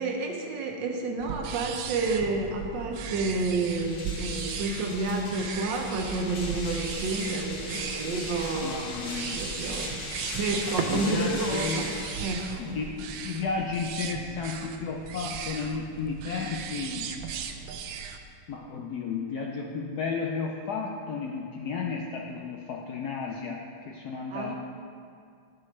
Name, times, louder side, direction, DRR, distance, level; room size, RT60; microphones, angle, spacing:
voice 1, 0.0-8.8 9.3-9.9 10.3-11.9 12.2-12.5 24.3-24.6, right 3 dB, 70° right, 2 dB, 1.4 m, -30 dB
sound 1, 1.2-18.2, right 6 dB, 90° right, 1.4 m, -37 dB
sound 2, 3.2-12.9, left 2 dB, 45° left, 1.4 m, -39 dB
sound 3, 5.5-12.9, right 2 dB, 45° right, 0.9 m, -46 dB
voice 2, 8.5-9.4 10.9-11.9 12.6-17.1 18.5-24.6, left 5 dB, 75° left, 0 dB, 0.9 m, -33 dB
10.5 x 7.4 x 3.1 m, 2.3 s
omnidirectional pair, 2.2 m